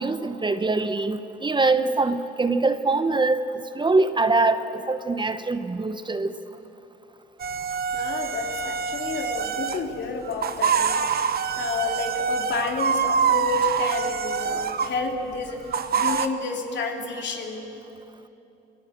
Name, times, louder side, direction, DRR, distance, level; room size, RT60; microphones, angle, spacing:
voice 1, 0.0-6.3, right 3 dB, 25° right, 10 dB, 1.0 m, -23 dB
sound 1, 7.4-9.8 10.3-15.0 15.7-16.3, right 7 dB, 50° right, 1.1 m, -25 dB
voice 2, 7.9-11.0 11.5-15.7 15.9-17.7, left 4 dB, 65° left, 2 dB, 3.1 m, -30 dB
28.0 x 18.0 x 7.4 m, 2.9 s
cardioid pair, 90°, 20 cm